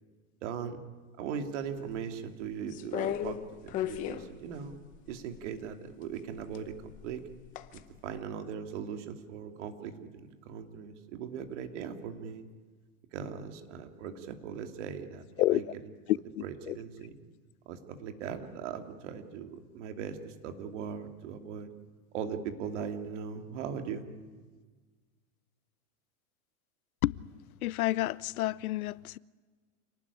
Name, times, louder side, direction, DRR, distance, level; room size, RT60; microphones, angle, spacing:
voice 1, 0.4-0.8 1.2-4.8 5.1-7.2 7.7-12.4 13.1-15.6 16.1-17.2 17.7-21.7 22.1-24.1, right 7 dB, 55° right, 2.8 m, -39 dB
sound 1, 2.7-5.5 6.4-7.8 8.2-8.3, left 11 dB, 20° left, 0.7 m, -36 dB
voice 2, 16.1-16.8 27.0-27.2 27.6-29.2, left 16 dB, 80° left, 0.8 m, -29 dB
28.0 x 19.5 x 9.9 m
supercardioid pair, 175°, 43 cm